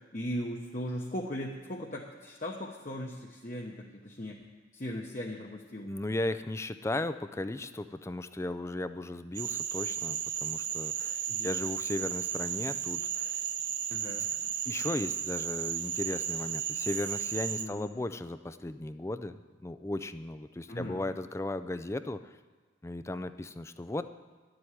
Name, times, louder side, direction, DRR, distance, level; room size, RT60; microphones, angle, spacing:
voice 1, 0.1-4.4 4.7-5.9 11.3-11.5 13.9-14.3 17.6-17.9 20.7-21.0, equal, 40° left, -1 dB, 1.0 m, -38 dB
voice 2, 5.9-13.4 14.6-22.4 22.8-24.0, left 1 dB, 15° left, 11 dB, 0.4 m, -36 dB
Frog, 9.3-17.7, right 9 dB, 65° right, 0.8 m, -34 dB
12.0 x 7.9 x 9.9 m, 1.4 s
head